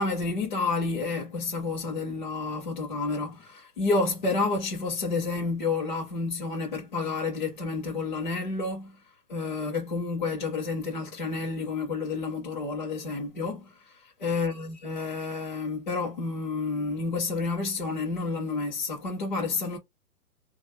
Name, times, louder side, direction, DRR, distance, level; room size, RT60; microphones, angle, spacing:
voice 1, 0.0-9.0 9.3-19.8, left 3 dB, 35° left, 0.5 m, -30 dB
3.6 x 2.2 x 2.9 m
hypercardioid pair, 170°, 47 cm